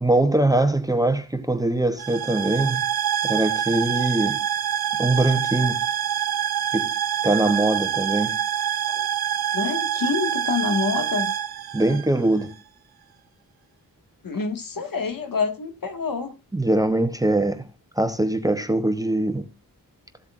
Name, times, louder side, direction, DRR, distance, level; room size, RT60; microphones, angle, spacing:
voice 1, 0.0-2.8 3.2-4.4 5.0-5.8 6.7-6.9 7.2-8.4 11.7-12.5 16.5-17.7 18.0-19.5, right 2 dB, 10° right, 0.9 m, -22 dB
sound 1, 2.0-12.5, right 10 dB, 80° right, 0.8 m, -26 dB
voice 2, 9.5-11.3 14.2-16.4, left 5 dB, 65° left, 1.9 m, -27 dB
15.0 x 7.9 x 2.5 m
wide cardioid pair, 130°, 36 cm